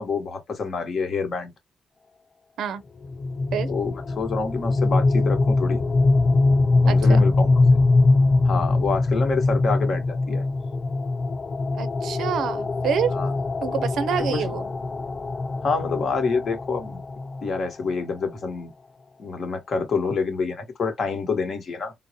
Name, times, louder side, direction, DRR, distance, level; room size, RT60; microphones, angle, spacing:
voice 1, 0.0-1.5 3.7-5.8 6.8-7.8 8.4-10.4 13.1-13.3 14.3-14.5 15.6-17.0 17.4-18.7 19.2-21.9, left 4 dB, 50° left, 1.1 m, -27 dB
sound 1, 3.0-17.9, left 3 dB, 25° left, 0.4 m, -22 dB
voice 2, 6.9-7.2 11.7-13.1 13.6-14.7, right 7 dB, 75° right, 0.5 m, -27 dB
3.8 x 2.0 x 2.7 m
cardioid pair, 90°, 0 cm